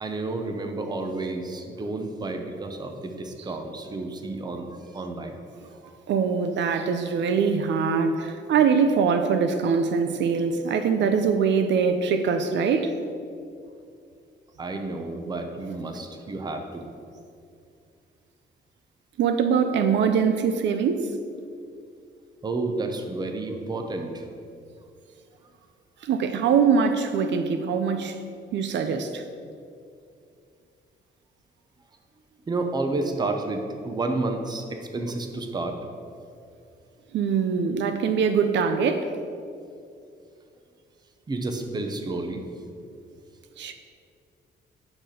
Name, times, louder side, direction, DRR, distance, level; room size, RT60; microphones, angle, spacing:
voice 1, 0.0-5.3 5.8-5.9 14.6-16.8 22.4-24.3 32.5-35.8 41.3-42.4, right 2 dB, 20° right, 5 dB, 0.7 m, -30 dB
voice 2, 6.1-12.9 19.2-21.1 26.0-28.2 28.5-29.2 37.1-39.1 43.6-43.7, right 6 dB, 75° right, 8 dB, 0.6 m, -23 dB
9.0 x 5.9 x 5.1 m, 2.4 s
cardioid pair, 155°, 19 cm